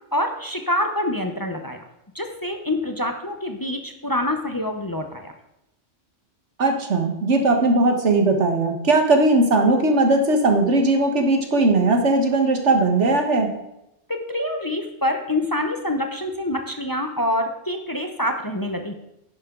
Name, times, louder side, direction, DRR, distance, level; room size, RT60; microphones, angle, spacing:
voice 1, 0.1-1.8 2.1-5.3 14.1-18.9, left 1 dB, 20° left, 5 dB, 0.8 m, -26 dB
voice 2, 6.6-13.5, right 2 dB, 85° right, 4 dB, 1.8 m, -18 dB
10.5 x 9.9 x 3.8 m, 0.86 s
omnidirectional pair, 1.2 m